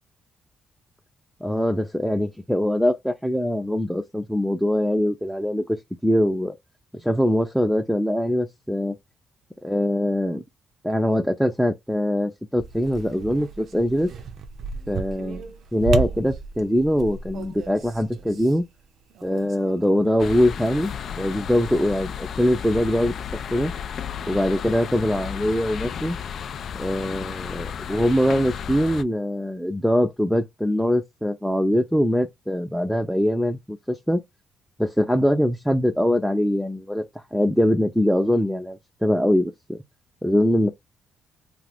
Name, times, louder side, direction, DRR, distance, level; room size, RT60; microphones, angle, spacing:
voice 1, 1.4-6.5 6.9-9.0 9.6-10.4 10.8-14.1 14.9-15.4 15.7-18.6 19.2-23.1 23.5-23.7 24.3-26.2 26.7-34.2 34.8-37.0 37.3-39.8 40.2-40.7, equal, ahead, 0.5 m, -22 dB
sound 1, 12.6-20.2 20.5-22.0, right 5 dB, 65° right, 0.5 m, -34 dB
sound 2, 20.2-29.0, left 8 dB, 60° left, 0.3 m, -33 dB
2.5 x 2.4 x 3.4 m
cardioid pair, 90°, 0 cm